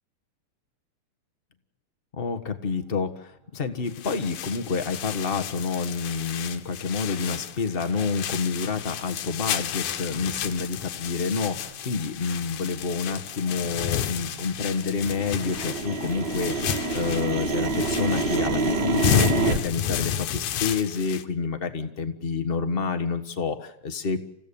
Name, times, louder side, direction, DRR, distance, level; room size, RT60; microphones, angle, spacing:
voice 1, 2.1-24.2, left 5 dB, 70° left, 7 dB, 0.5 m, -28 dB
sound 1, 3.9-21.2, left 9 dB, 90° left, 2.6 m, -32 dB
sound 2, 8.8-8.9 9.4-9.6 10.2-10.5 11.0-11.1 11.3-11.9 12.1-14.5 14.7-19.6, right 3 dB, 35° right, 2.5 m, -28 dB
28.5 x 16.5 x 7.0 m, 0.83 s
omnidirectional pair, 3.5 m